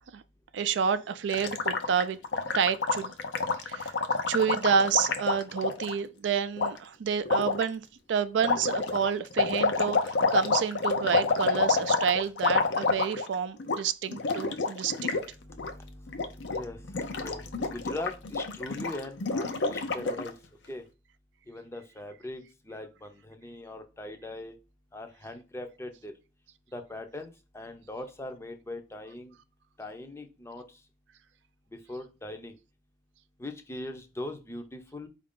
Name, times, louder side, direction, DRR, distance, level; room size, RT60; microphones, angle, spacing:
voice 1, 0.5-2.2 2.5-3.1 3.6-3.9 4.3-7.8 8.1-15.1, right 7 dB, 85° right, 0.4 m, -29 dB
Gurgling, 1.3-5.9 6.6-6.7 7.2-7.6 8.4-13.3 13.6-13.8 14.1-15.2 15.5-15.7 16.1-16.6 16.9-20.3, left 4 dB, 85° left, 0.5 m, -28 dB
voice 2, 15.3-20.3 20.7-20.8 21.5-24.5 24.9-26.1 26.7-29.4 29.8-30.6 31.9-32.6 33.4-35.1, left 1 dB, 15° left, 0.5 m, -40 dB
4.6 x 2.5 x 3.5 m
head